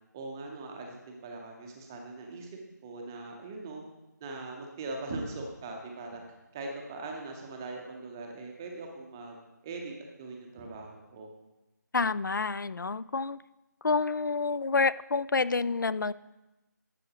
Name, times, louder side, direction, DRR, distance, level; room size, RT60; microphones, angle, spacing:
voice 1, 0.1-3.8 4.2-6.2 6.5-9.4 9.6-11.3, right 3 dB, 10° right, 1 dB, 0.6 m, -41 dB
voice 2, 11.9-13.4 13.8-16.1, left 4 dB, 80° left, 18 dB, 0.4 m, -28 dB
11.5 x 7.7 x 2.9 m, 1.0 s
figure-of-eight pair, 165°, 10 cm